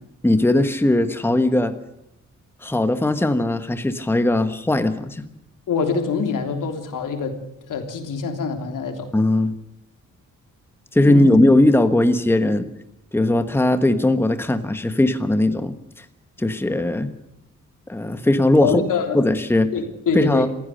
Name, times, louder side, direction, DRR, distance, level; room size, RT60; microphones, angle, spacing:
voice 1, 0.2-1.7 2.6-5.2 9.1-9.5 10.9-12.7 13.1-16.0 16.4-17.1 17.9-18.8 19.1-19.7 20.1-20.5, left 1 dB, 5° left, 9 dB, 1.3 m, -19 dB
voice 2, 5.7-7.4 7.7-9.1 11.0-11.4 18.6-19.2 19.7-20.5, left 5 dB, 90° left, 5 dB, 3.4 m, -25 dB
26.5 x 15.5 x 6.7 m, 0.80 s
wide cardioid pair, 140°, 31 cm